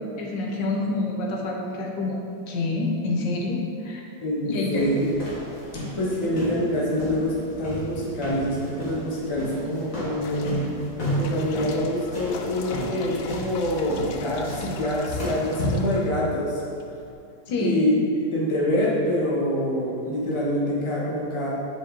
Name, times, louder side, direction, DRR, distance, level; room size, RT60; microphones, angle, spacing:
voice 1, 0.2-2.2 2.5-4.0 4.4-4.9 6.2-6.3 17.5-17.8, left 3 dB, 90° left, -1 dB, 1.6 m, -27 dB
voice 2, 4.2-5.2 5.9-10.6 11.0-16.6 17.6-21.5, left 1 dB, 20° left, -6 dB, 1.3 m, -26 dB
sound 1, 4.7-15.9, equal, 50° left, 2.1 m, -32 dB
sound 2, 10.2-17.1, left 6 dB, 75° left, 1.1 m, -41 dB
8.1 x 5.1 x 3.9 m, 2.5 s
omnidirectional pair, 1.9 m